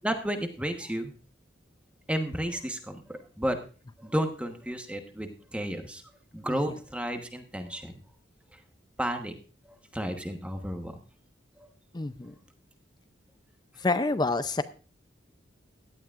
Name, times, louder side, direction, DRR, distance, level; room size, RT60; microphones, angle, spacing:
voice 1, 0.0-1.1 2.1-3.6 4.0-6.0 6.3-7.9 9.0-9.3 9.9-11.0 11.6-11.7, equal, 5° right, 1.1 m, -32 dB
voice 2, 11.9-12.3 13.8-14.6, left 3 dB, 20° left, 0.5 m, -27 dB
16.5 x 11.5 x 2.5 m
head